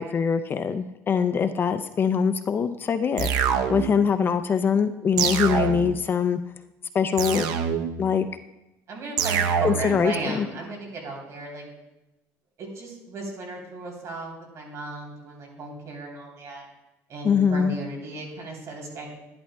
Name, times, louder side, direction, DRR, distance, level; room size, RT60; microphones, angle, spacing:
voice 1, 0.0-6.4 6.9-7.5 8.0-8.3 9.6-10.5 17.2-17.8, left 6 dB, 30° left, 10 dB, 0.4 m, -23 dB
sound 1, 3.2-4.1 5.2-6.1 7.2-8.1 9.2-10.1, right 7 dB, 75° right, 0.7 m, -25 dB
voice 2, 8.9-11.6 12.6-16.6 17.1-19.1, right 3 dB, 50° right, -1 dB, 3.3 m, -35 dB
11.5 x 11.0 x 2.2 m, 0.97 s
cardioid pair, 125°, 7 cm